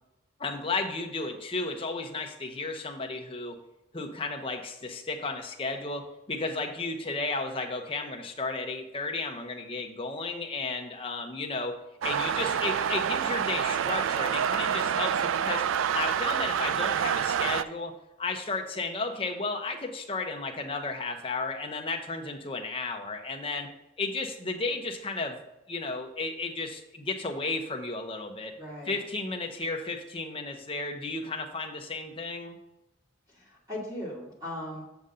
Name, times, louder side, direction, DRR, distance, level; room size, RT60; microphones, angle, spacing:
voice 1, 0.4-3.6 3.9-11.8 12.0-15.6 15.9-17.9 18.2-23.7 24.0-25.4 25.7-28.5 28.9-32.6, left 3 dB, 25° left, 3 dB, 0.8 m, -33 dB
sound 1, 12.0-17.6, right 8 dB, 85° right, 0.3 m, -27 dB
voice 2, 28.5-29.0 33.3-34.8, left 1 dB, 20° right, -5 dB, 2.4 m, -38 dB
7.0 x 6.6 x 3.8 m, 0.90 s
head